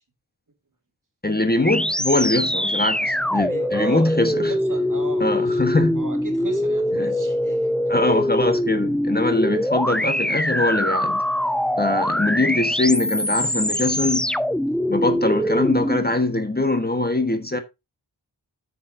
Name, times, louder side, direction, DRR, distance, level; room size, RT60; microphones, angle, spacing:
voice 1, 1.2-4.5 5.2-6.0 7.0-7.1 7.9-11.2 11.8-14.4 14.9-17.6, left 2 dB, 25° left, 1.3 m, -22 dB
sound 1, 1.6-16.0, left 1 dB, ahead, 0.3 m, -23 dB
voice 2, 3.3-5.6 5.9-7.7 12.4-12.6, right 3 dB, 50° right, 2.2 m, -37 dB
10.0 x 6.8 x 2.7 m
wide cardioid pair, 60°, 41 cm